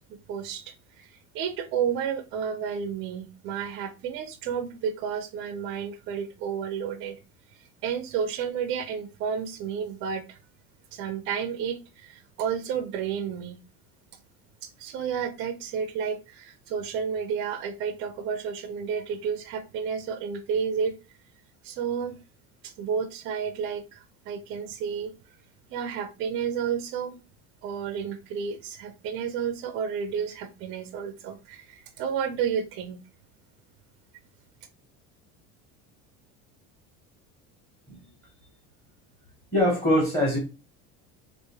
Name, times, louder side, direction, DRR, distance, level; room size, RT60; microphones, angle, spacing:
voice 1, 0.1-7.2 7.8-10.4 10.9-13.6 14.6-21.0 21.6-22.2 22.6-25.1 25.7-27.2 27.6-33.0, right 7 dB, 35° right, 0.4 m, -31 dB
voice 2, 39.5-40.4, equal, 10° left, 0.9 m, -22 dB
3.4 x 2.5 x 3.1 m
cardioid pair, 175°, 34 cm